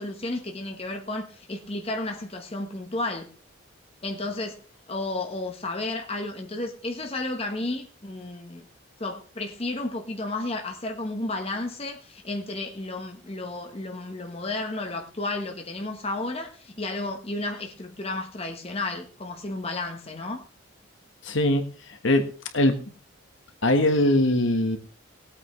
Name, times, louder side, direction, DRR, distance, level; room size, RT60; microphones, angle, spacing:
voice 1, 0.0-3.3 4.0-4.6 4.9-8.6 9.0-20.5, left 2 dB, 30° left, 1.2 m, -32 dB
voice 2, 21.2-21.6 22.0-22.3 22.5-22.8 23.6-24.8, left 1 dB, 65° left, 1.4 m, -21 dB
19.0 x 8.7 x 3.2 m
head